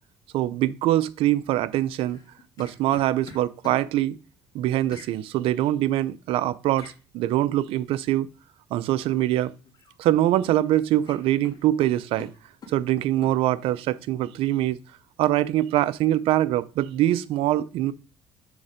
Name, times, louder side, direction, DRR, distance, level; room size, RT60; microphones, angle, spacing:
voice 1, 0.3-2.2 2.6-4.2 4.5-8.3 8.7-9.5 10.0-12.3 12.7-14.8 15.2-17.9, right 14 dB, 75° right, 0.6 m, -23 dB
sound 1, 2.1-3.8 4.9-5.1 6.8-7.0 9.0-9.3 9.6-10.3 10.6-10.7 11.1-12.8 13.2-13.4, left 3 dB, 45° left, 2.4 m, -46 dB
7.1 x 4.2 x 5.1 m
cardioid pair, 95°, 10 cm